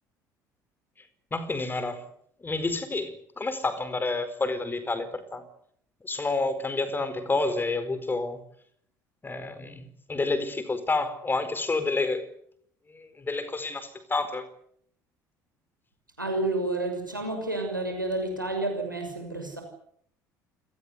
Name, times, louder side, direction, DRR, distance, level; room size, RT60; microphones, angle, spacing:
voice 1, 1.3-2.1 2.4-5.5 6.0-8.4 9.2-12.3 12.9-14.5, left 3 dB, 20° left, 4.5 m, -29 dB
voice 2, 16.2-19.6, right 2 dB, 90° right, 6.3 m, -30 dB
28.5 x 19.5 x 8.3 m
figure-of-eight pair, 55°, 10 cm